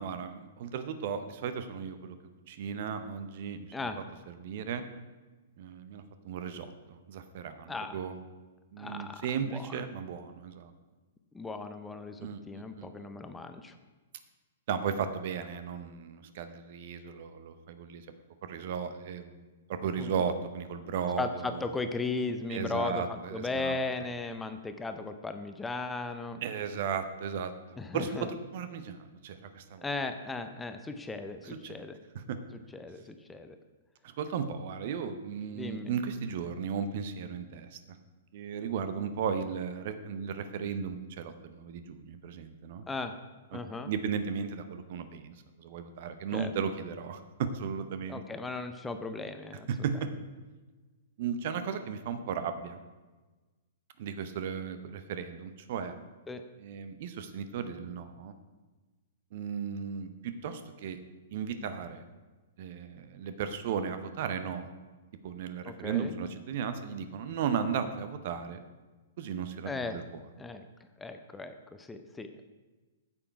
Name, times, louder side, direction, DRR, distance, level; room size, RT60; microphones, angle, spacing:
voice 1, 0.0-2.1 2.5-3.7 4.4-4.8 5.6-8.2 8.7-10.7 12.2-13.1 14.7-18.1 18.5-21.6 22.5-23.8 26.4-27.5 27.9-29.8 31.4-31.8 32.1-32.4 34.0-38.0 38.3-42.8 43.5-43.6 43.9-48.2 49.7-50.1 51.2-52.8 54.0-55.9 56.6-58.3 59.3-61.0 61.3-62.0 62.6-64.7 65.2-68.6 69.2-70.0, right 7 dB, 50° right, 10 dB, 0.7 m, -35 dB
voice 2, 8.8-9.8 11.3-13.7 20.0-20.3 21.2-26.4 27.8-28.3 29.8-32.0 32.7-33.6 35.5-35.9 42.9-43.1 43.5-43.9 46.3-46.5 48.1-49.7 56.3-56.4 65.6-66.1 69.6-70.0 70.4-70.6 71.0-72.4, left 3 dB, 10° left, 8 dB, 0.6 m, -36 dB
8.6 x 7.2 x 4.7 m, 1.3 s
figure-of-eight pair, 110°, 0 cm